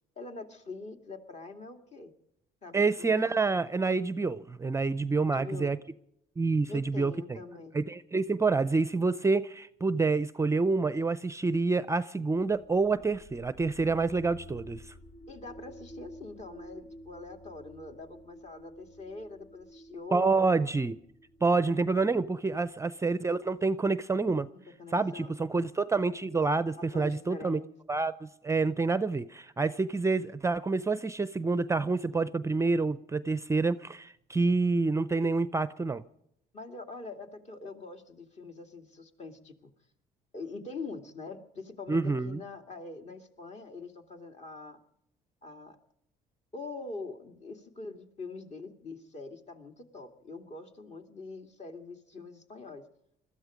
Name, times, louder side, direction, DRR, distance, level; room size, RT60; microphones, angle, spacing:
voice 1, 0.2-2.1 2.6-3.2 5.1-5.7 6.7-7.8 15.3-20.5 21.7-21.9 24.5-25.3 26.8-27.7 36.5-39.7 40.3-44.8 45.4-45.8 46.5-52.8, left 3 dB, 40° left, 2.4 m, -44 dB
voice 2, 2.7-5.8 6.4-7.4 7.7-14.9 20.1-21.0 21.4-24.5 24.9-27.6 27.9-36.0 41.9-42.4, right 3 dB, 15° right, 0.5 m, -28 dB
sound 1, 12.3-24.1, equal, 70° left, 2.2 m, -52 dB
21.0 x 13.5 x 5.1 m
cardioid pair, 110°, 17 cm